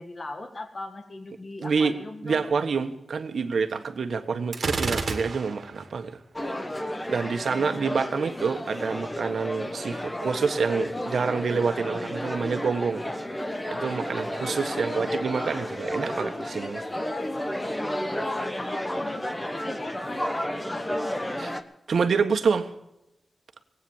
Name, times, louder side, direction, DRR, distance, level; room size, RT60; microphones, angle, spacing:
voice 1, 0.0-2.4 7.4-8.1 9.8-10.1 14.7-15.1 17.0-17.7 18.2-21.4, left 2 dB, 40° left, 6 dB, 1.8 m, -40 dB
voice 2, 1.6-1.9 2.2-6.2 7.1-13.0 13.7-16.8 21.4-21.5 21.9-22.7, right 5 dB, 80° right, 8 dB, 1.4 m, -27 dB
Gunshot gunfire, 4.5-5.8, right 4 dB, 65° right, 2.2 m, -29 dB
sound 1, 6.4-21.6, left 1 dB, 15° left, 1.2 m, -32 dB
19.0 x 9.4 x 7.2 m, 0.86 s
wide cardioid pair, 105°, 0 cm